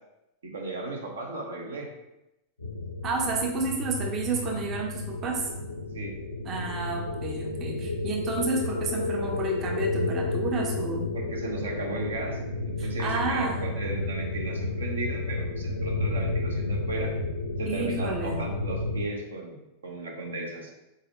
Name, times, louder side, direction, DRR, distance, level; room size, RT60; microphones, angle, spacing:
voice 1, 0.4-1.9 5.9-6.2 11.1-12.4 12.7-17.1 17.6-20.7, right 2 dB, 70° right, 0 dB, 0.7 m, -35 dB
sound 1, 2.6-19.0, left 2 dB, 75° left, 0.5 m, -31 dB
voice 2, 3.0-5.5 6.4-11.1 12.8-13.5 17.7-18.4, right 3 dB, 30° right, 1 dB, 0.6 m, -30 dB
4.0 x 4.0 x 2.6 m, 0.94 s
figure-of-eight pair, 90°, 0 cm